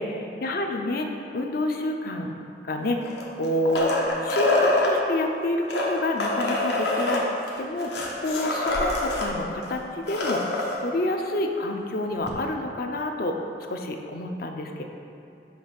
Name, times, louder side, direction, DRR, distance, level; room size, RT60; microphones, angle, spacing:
voice 1, 0.0-2.3 2.6-3.1 3.4-3.9 4.2-7.2 7.6-14.8, left 1 dB, 55° left, 4 dB, 0.5 m, -28 dB
sound 1, 3.0-4.9 5.6-9.3 9.6-9.7 10.0-10.8 12.3-12.4, left 2 dB, 70° left, 0.8 m, -25 dB
5.9 x 3.1 x 5.7 m, 2.6 s
head